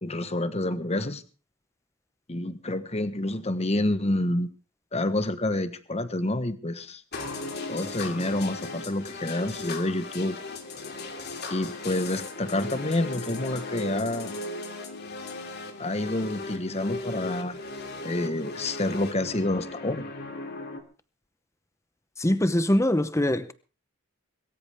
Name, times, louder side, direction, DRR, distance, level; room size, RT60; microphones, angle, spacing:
voice 1, 0.0-1.2 2.3-4.5 4.9-7.0 7.7-10.4 11.5-14.3 15.8-17.6 18.0-20.1, left 1 dB, 30° left, 1.3 m, -28 dB
sound 1, 7.1-20.8, left 2 dB, 50° left, 2.9 m, -37 dB
voice 2, 22.2-23.5, left 1 dB, 15° left, 0.8 m, -23 dB
22.5 x 14.0 x 3.6 m
head